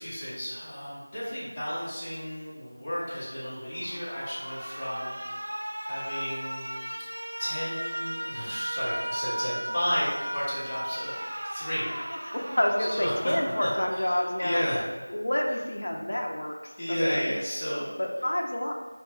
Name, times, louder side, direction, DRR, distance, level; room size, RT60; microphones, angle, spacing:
voice 1, 0.0-5.2 5.8-6.6 7.4-11.9 13.0-13.3 13.6-14.9 16.8-17.9, equal, 15° left, -12 dB, 0.8 m, -32 dB
Alarm, 3.7-14.7, right 1 dB, 35° right, 0.5 m, -36 dB
voice 2, 12.3-14.6 15.1-17.2 18.0-18.7, left 1 dB, 45° left, 1 dB, 0.5 m, -28 dB
5.2 x 3.0 x 2.3 m, 1.4 s
figure-of-eight pair, 175°, 0 cm